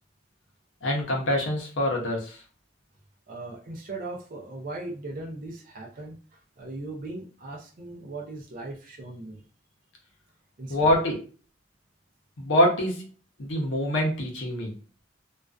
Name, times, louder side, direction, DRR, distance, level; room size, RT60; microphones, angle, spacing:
voice 1, 0.8-2.4 10.7-11.2 12.4-13.1 13.4-14.7, left 1 dB, 75° left, 0 dB, 0.6 m, -25 dB
voice 2, 3.3-9.4 10.6-10.9, right 2 dB, 45° right, -1 dB, 0.4 m, -38 dB
2.4 x 2.2 x 2.3 m, 0.39 s
head